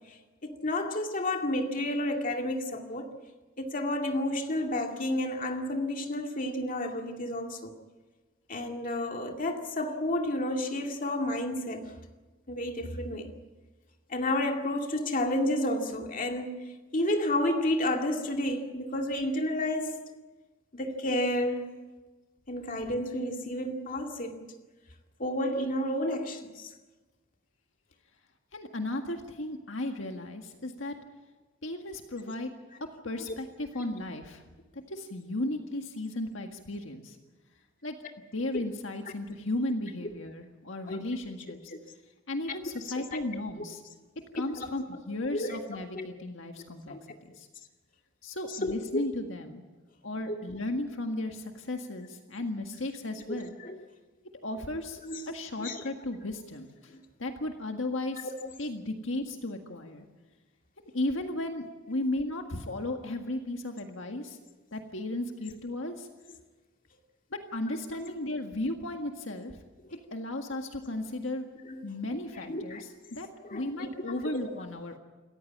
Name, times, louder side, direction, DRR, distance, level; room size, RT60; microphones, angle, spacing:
voice 1, 0.4-3.1 3.6-7.7 8.5-11.9 12.5-13.3 14.1-16.6 16.9-20.0 20.7-21.7 22.5-24.4 25.2-26.7 40.9-41.0 43.1-43.2 44.4-44.7 45.3-45.6 45.9-46.1 46.9-47.0 48.6-49.0 53.3-53.8 55.0-55.8 58.4-58.5 70.8-70.9 71.6-71.8 72.5-72.8 73.4-73.6 74.1-74.2, left 1 dB, 40° left, 2.2 m, -31 dB
voice 2, 28.5-31.0 31.6-32.5 33.0-34.4 34.7-37.2 37.8-38.0 38.3-41.7 42.3-43.8 44.3-47.0 47.2-47.5 48.2-49.6 50.0-53.6 54.4-55.0 55.3-56.9 57.2-58.3 58.6-60.0 60.9-64.4 64.7-66.1 67.3-69.6 69.9-71.5 71.8-75.0, left 1 dB, 70° left, 1.8 m, -35 dB
28.0 x 14.5 x 8.7 m
head